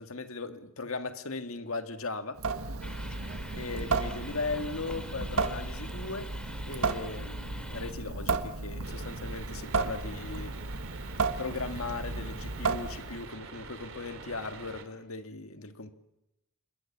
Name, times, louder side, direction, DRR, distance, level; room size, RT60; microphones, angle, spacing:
voice 1, 0.0-2.4 3.5-6.3 6.7-10.6 11.4-15.9, left 3 dB, 70° left, 1.8 m, -38 dB
Water tap faucet / Sink (filling or washing) / Drip, 2.4-13.3, right 4 dB, 80° right, 1.5 m, -34 dB
sound 1, 2.8-7.9, equal, 5° left, 2.9 m, -46 dB
sound 2, 8.8-14.8, right 4 dB, 65° right, 3.1 m, -46 dB
28.0 x 22.0 x 7.3 m
head